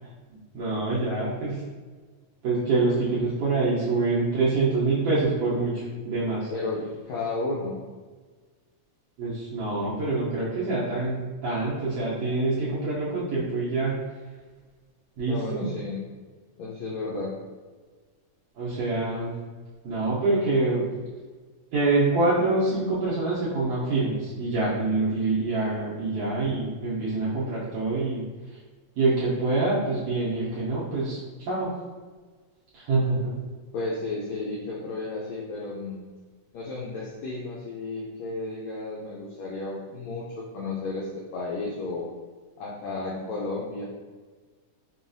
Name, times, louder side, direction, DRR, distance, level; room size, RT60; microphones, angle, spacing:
voice 1, 0.5-1.6 2.4-6.5 9.2-14.0 15.2-15.7 18.5-19.3 19.8-20.9 21.7-28.6 29.0-31.7 32.7-33.3, right 3 dB, 75° right, -8 dB, 1.5 m, -26 dB
voice 2, 6.5-7.8 15.3-16.0 16.6-17.3 33.7-36.0 36.5-42.1 42.6-43.9, left 3 dB, 85° left, -6 dB, 1.5 m, -33 dB
5.6 x 2.3 x 2.5 m, 1.4 s
omnidirectional pair, 3.7 m